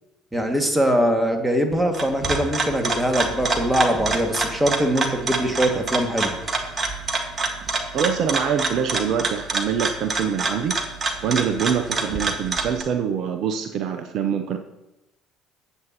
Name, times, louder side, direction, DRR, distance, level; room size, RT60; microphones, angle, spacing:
voice 1, 0.3-6.3, equal, 10° right, 4 dB, 2.0 m, -22 dB
sound 1, 1.7-12.8, right 3 dB, 30° right, 1.6 m, -26 dB
voice 2, 7.9-10.8 11.2-14.6, right 7 dB, 55° right, 8 dB, 0.7 m, -24 dB
18.5 x 7.9 x 2.9 m, 0.92 s
figure-of-eight pair, 55°, 0 cm